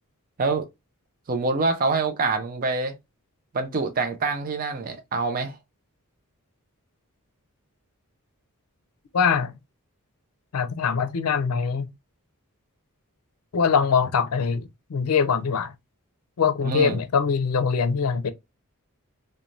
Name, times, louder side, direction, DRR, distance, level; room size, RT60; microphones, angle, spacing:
voice 1, 1.3-3.0 3.5-5.6 16.6-17.0, right 3 dB, 40° right, 0.4 m, -25 dB
voice 2, 9.1-9.5 10.5-11.9 13.5-15.7 16.4-18.3, left 6 dB, 90° left, 0.5 m, -23 dB
3.1 x 2.1 x 2.5 m
head